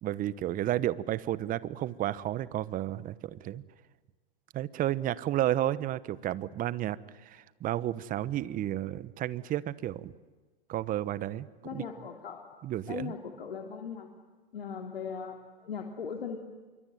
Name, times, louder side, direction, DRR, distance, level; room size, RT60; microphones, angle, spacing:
voice 1, 0.0-3.6 4.5-10.1 10.7-11.8 12.6-13.1, right 13 dB, 30° right, 18 dB, 1.1 m, -32 dB
voice 2, 11.6-12.4 12.9-14.1 14.5-16.4, left 6 dB, 85° left, 3 dB, 3.2 m, -39 dB
26.5 x 24.0 x 9.3 m, 1.3 s
hypercardioid pair, 115°, 29 cm